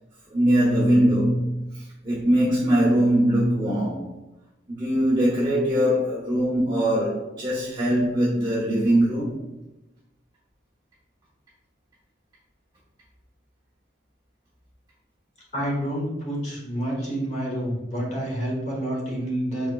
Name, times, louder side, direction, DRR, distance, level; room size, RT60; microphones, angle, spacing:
voice 1, 0.3-1.6 2.0-4.1 4.8-9.4, right 1 dB, 20° right, -10 dB, 1.1 m, -21 dB
voice 2, 15.5-19.7, right 1 dB, 35° left, -3 dB, 1.2 m, -28 dB
4.4 x 3.6 x 2.3 m, 0.96 s
head